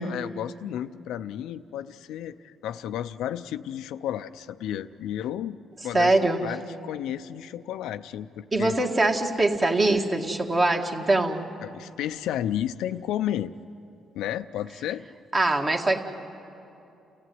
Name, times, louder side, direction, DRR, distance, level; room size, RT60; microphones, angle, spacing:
voice 1, 0.0-5.6 5.8-8.8 11.6-13.5 14.1-15.1, left 11 dB, 90° left, 11 dB, 0.5 m, -32 dB
voice 2, 5.9-6.4 8.5-11.5 15.3-16.0, right 2 dB, 30° right, 3 dB, 2.0 m, -23 dB
29.5 x 15.0 x 9.4 m, 2.8 s
cardioid pair, 90°, 0 cm